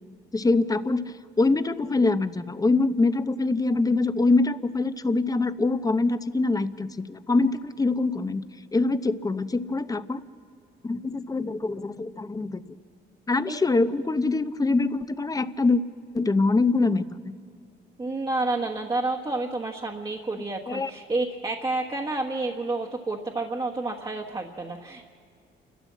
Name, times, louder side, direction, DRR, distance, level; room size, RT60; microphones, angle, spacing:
voice 1, 0.3-8.4 8.7-10.2 10.8-12.6 13.3-15.8 16.1-17.3 20.7-20.9, left 3 dB, 20° left, 12 dB, 0.8 m, -24 dB
voice 2, 18.0-25.0, right 2 dB, 20° right, -2 dB, 1.3 m, -29 dB
29.0 x 12.5 x 7.4 m, 2.3 s
cardioid pair, 90°, 20 cm